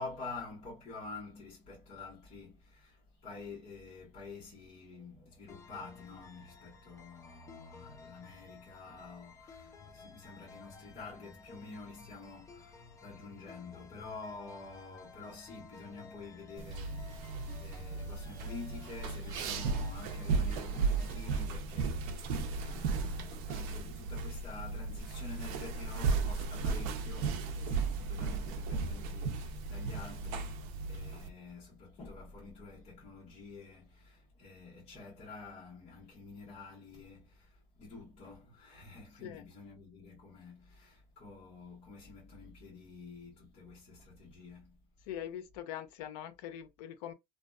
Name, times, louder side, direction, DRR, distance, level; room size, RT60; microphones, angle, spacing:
voice 1, 0.0-30.6 30.9-44.8, left 3 dB, 35° left, 1.1 m, -48 dB
sound 1, 5.5-21.5, left 4 dB, 15° left, 0.4 m, -54 dB
sound 2, 16.6-31.3, right 4 dB, 65° right, 0.5 m, -35 dB
voice 2, 45.1-47.1, left 10 dB, 85° left, 0.6 m, -42 dB
2.6 x 2.2 x 2.2 m
cardioid pair, 155°, 19 cm